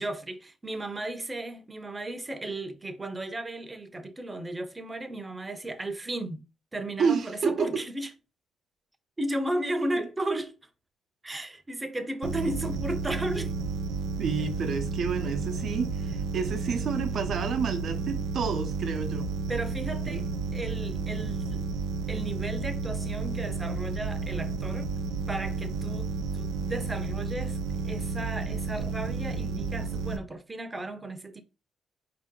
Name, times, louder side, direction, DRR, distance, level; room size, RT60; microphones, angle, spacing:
voice 1, 0.0-6.4 6.7-8.1 9.2-10.7 11.2-13.5 19.5-20.2 20.5-21.7 22.1-24.9 25.3-27.6 27.8-31.4, right 1 dB, 20° right, 0.8 m, -34 dB
voice 2, 7.0-7.7 10.0-10.1 14.2-19.3 20.1-20.2, right 5 dB, 60° right, 0.8 m, -30 dB
sound 1, 12.2-30.2, right 4 dB, 90° right, 0.6 m, -32 dB
4.4 x 2.8 x 3.7 m
cardioid pair, 90°, 0 cm